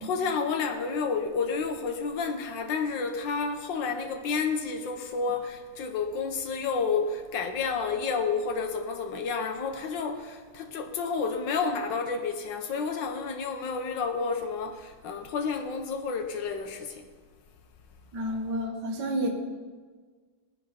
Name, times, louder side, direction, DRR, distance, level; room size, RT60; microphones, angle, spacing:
voice 1, 0.0-17.1, left 5 dB, 85° left, 1.7 m, -30 dB
voice 2, 18.1-19.3, equal, 70° right, 2.2 m, -30 dB
18.0 x 10.0 x 5.2 m
omnidirectional pair, 1.9 m